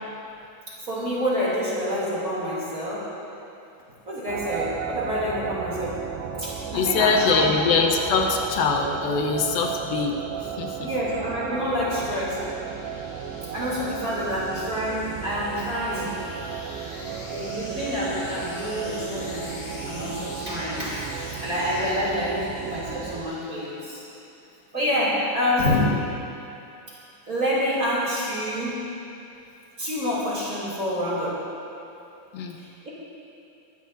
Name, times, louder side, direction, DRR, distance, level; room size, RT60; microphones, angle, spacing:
voice 1, 0.9-3.1 4.1-6.0 6.4-7.6 10.8-12.4 13.5-16.1 17.3-21.1 21.4-24.0 24.7-25.9 27.3-28.8 29.8-31.4 32.6-32.9, equal, 25° right, -8 dB, 2.8 m, -27 dB
sound 1, 4.3-23.2, right 7 dB, 80° right, 2.4 m, -34 dB
voice 2, 6.7-10.9 32.3-32.6, left 4 dB, 85° left, 2 dB, 2.8 m, -23 dB
sound 2, 10.6-24.1, left 2 dB, 45° left, 2.0 m, -44 dB
21.5 x 12.5 x 2.7 m, 2.7 s
omnidirectional pair, 4.1 m